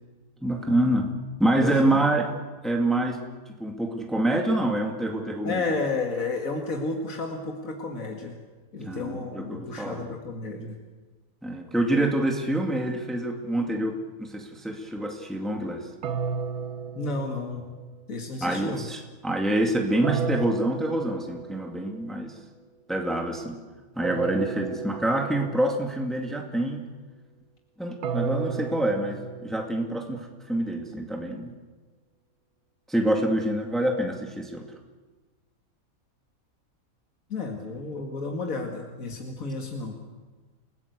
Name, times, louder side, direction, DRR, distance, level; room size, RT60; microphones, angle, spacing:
voice 1, 0.4-1.1 1.4-2.3 2.6-3.2 3.6-5.6 8.8-10.0 11.4-15.8 18.4-22.3 22.9-23.6 24.0-26.8 27.8-31.5 32.9-34.7, right 1 dB, ahead, 2 dB, 2.2 m, -26 dB
voice 2, 1.6-2.0 5.4-8.4 8.7-10.8 16.9-17.7 18.1-18.9 37.3-39.9, left 3 dB, 70° left, 2 dB, 2.5 m, -32 dB
sound 1, 16.0-18.1 20.0-21.9 24.0-25.9 28.0-30.2, right 6 dB, 85° right, 1.6 m, -33 dB
30.0 x 16.5 x 8.2 m, 1.3 s
omnidirectional pair, 1.5 m